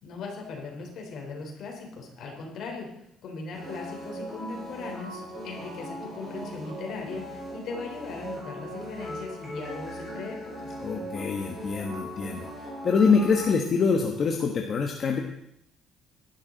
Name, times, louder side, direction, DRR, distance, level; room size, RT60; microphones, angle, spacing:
voice 1, 0.0-2.9 3.2-10.7, left 4 dB, 55° left, 1 dB, 3.9 m, -38 dB
sound 1, 3.5-13.5, equal, 15° right, 6.6 m, -39 dB
voice 2, 10.8-12.5 12.8-15.2, left 5 dB, 35° left, 2 dB, 1.2 m, -24 dB
16.5 x 12.0 x 4.0 m, 0.78 s
cardioid pair, 165°, 0 cm